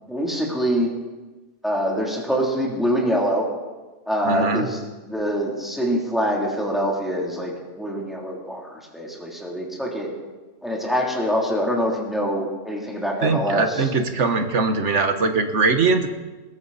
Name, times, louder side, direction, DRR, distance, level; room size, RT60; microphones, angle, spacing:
voice 1, 0.1-0.9 1.6-3.5 4.1-4.8 5.0-10.1 10.6-13.9, equal, ahead, -3 dB, 3.1 m, -24 dB
voice 2, 4.3-4.7 13.2-16.1, right 4 dB, 70° right, 7 dB, 1.6 m, -21 dB
20.5 x 15.5 x 4.2 m, 1.2 s
omnidirectional pair, 1.3 m